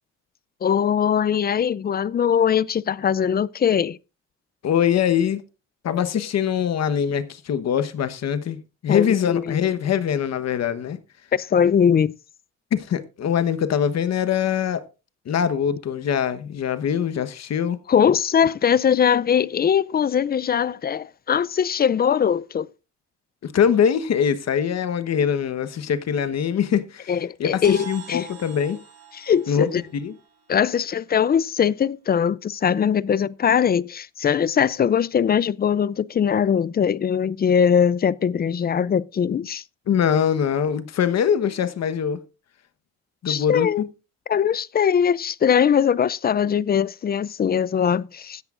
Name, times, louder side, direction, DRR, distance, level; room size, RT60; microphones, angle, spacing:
voice 1, 0.6-4.0 8.9-9.6 11.3-12.1 17.9-22.7 27.1-28.2 29.2-29.8 30.5-39.6 43.3-43.9 44.3-48.4, left 8 dB, 30° left, 0.4 m, -21 dB
voice 2, 4.6-5.4 5.8-11.0 12.7-14.8 15.3-17.8 23.4-27.1 27.4-28.8 29.5-30.1 39.9-42.2 43.2-43.9, left 8 dB, 60° left, 1.2 m, -23 dB
sound 1, 27.6-31.4, right 7 dB, 55° right, 2.7 m, -44 dB
15.5 x 10.5 x 2.5 m
cardioid pair, 90°, 30 cm